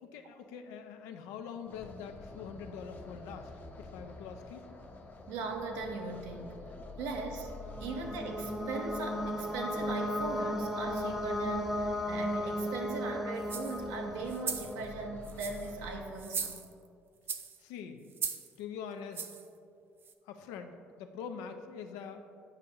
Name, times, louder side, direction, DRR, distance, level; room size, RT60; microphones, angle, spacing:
voice 1, 0.0-3.5 3.8-4.7 17.6-18.0 18.6-19.2 20.3-22.2, left 7 dB, 75° left, 7 dB, 0.5 m, -44 dB
sound 1, 1.7-16.0, left 2 dB, 35° left, 0.7 m, -48 dB
voice 2, 5.3-6.6 7.0-7.5 7.8-16.6, right 3 dB, 75° right, 2 dB, 0.8 m, -39 dB
sound 2, 7.3-15.1, left 1 dB, 5° right, 0.7 m, -36 dB
sound 3, 13.4-13.8 14.3-14.7 15.2-15.7 16.2-16.9 17.3-17.6 18.1-18.5 19.1-19.5 20.0-20.1, right 6 dB, 40° right, 0.5 m, -38 dB
8.1 x 5.2 x 2.8 m, 2.4 s
hypercardioid pair, 60°, 6 cm